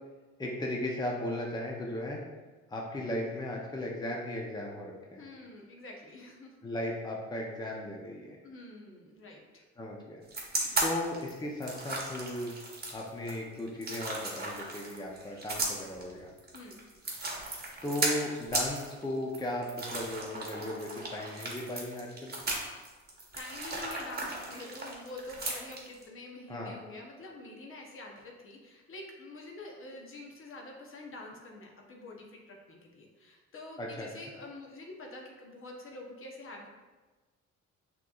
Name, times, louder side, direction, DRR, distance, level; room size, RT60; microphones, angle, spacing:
voice 1, 0.4-2.2 2.7-5.2 6.6-8.4 9.8-10.2 10.8-12.5 12.9-16.3 17.8-22.3 26.5-26.7 33.8-34.1, left 1 dB, 15° left, -1 dB, 0.6 m, -36 dB
voice 2, 5.2-6.5 8.4-9.6 10.6-10.8 16.5-16.9 23.3-36.7, left 2 dB, 45° left, 0 dB, 0.8 m, -47 dB
sound 1, 10.3-26.0, right 2 dB, 30° right, 1.1 m, -36 dB
5.9 x 3.0 x 2.4 m, 1.2 s
cardioid pair, 90°, 30 cm